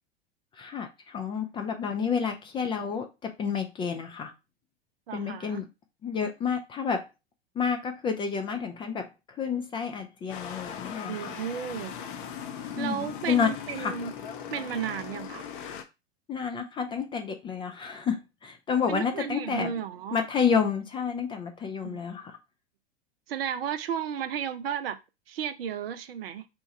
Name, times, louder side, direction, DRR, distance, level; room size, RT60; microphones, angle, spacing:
voice 1, 0.6-4.3 5.1-5.7 6.0-7.1 7.6-9.1 9.4-11.4 12.8-13.5 13.8-13.9 16.3-19.7 20.1-22.3, left 6 dB, 15° left, 0.4 m, -30 dB
voice 2, 5.1-5.6 11.1-11.9 12.8-14.1 14.5-15.5 18.9-20.2 21.8-22.0 23.3-25.0 25.3-26.5, right 8 dB, 65° right, 0.6 m, -33 dB
sound 1, 10.3-15.8, left 8 dB, 50° left, 0.7 m, -39 dB
2.9 x 2.3 x 4.1 m
figure-of-eight pair, 90°, 33 cm